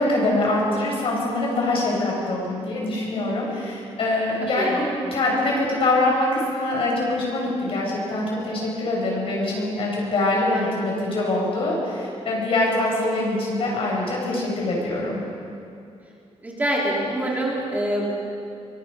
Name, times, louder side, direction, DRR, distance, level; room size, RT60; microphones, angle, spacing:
voice 1, 0.0-4.8 5.1-15.2, left 2 dB, 55° left, -3 dB, 7.1 m, -24 dB
voice 2, 10.5-11.0 16.4-18.2, right 1 dB, 15° right, -4 dB, 3.7 m, -26 dB
24.0 x 24.0 x 5.5 m, 2.5 s
wide cardioid pair, 165°, 11 cm